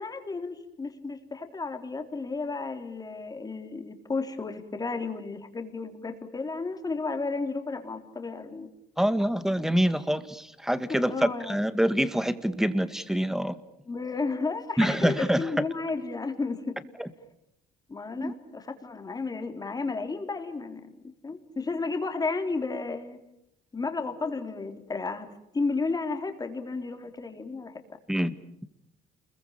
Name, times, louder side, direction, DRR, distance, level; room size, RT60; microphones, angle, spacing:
voice 1, 0.0-8.7 10.9-11.6 13.9-16.8 17.9-20.8 21.2-23.2 23.7-25.3 25.5-28.0, left 3 dB, 20° left, 6 dB, 3.6 m, -33 dB
voice 2, 9.0-13.5 14.8-15.5 17.0-17.1 18.2-18.3 28.1-28.3, equal, 5° right, 12 dB, 1.8 m, -26 dB
29.5 x 22.5 x 8.9 m, 0.78 s
cardioid pair, 110°, 17 cm